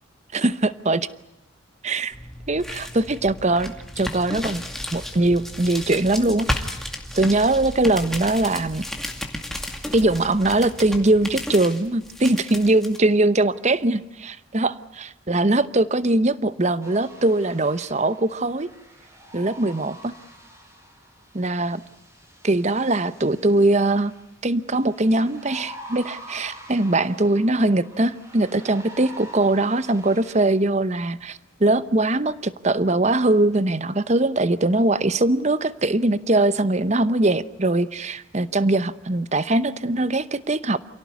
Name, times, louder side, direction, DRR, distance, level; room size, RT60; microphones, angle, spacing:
voice 1, 0.3-1.1 1.8-2.2 2.5-4.6 4.9-6.7 7.1-8.8 9.9-18.7 19.3-20.1 21.3-21.8 22.4-24.1 24.4-40.8, right 2 dB, 35° right, 15 dB, 0.9 m, -21 dB
sound 1, 2.1-13.0, left 1 dB, ahead, 2.3 m, -33 dB
sound 2, 16.8-30.5, right 1 dB, 15° right, 5.3 m, -46 dB
28.0 x 17.5 x 9.6 m, 0.95 s
head